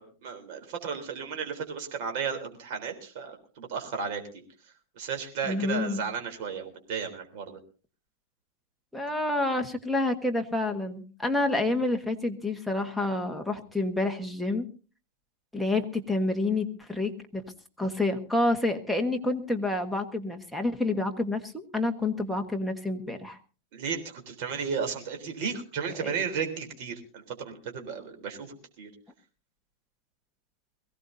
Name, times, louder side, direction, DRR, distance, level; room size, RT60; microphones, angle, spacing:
voice 1, 0.0-4.4 5.0-7.6 23.7-28.9, right 6 dB, 50° right, 4 dB, 3.6 m, -34 dB
voice 2, 5.4-6.0 8.9-14.7 15.5-17.4 17.8-23.4 26.0-26.2, left 2 dB, ahead, 3 dB, 1.4 m, -28 dB
22.5 x 16.5 x 2.7 m, 0.37 s
supercardioid pair, 155°, 0 cm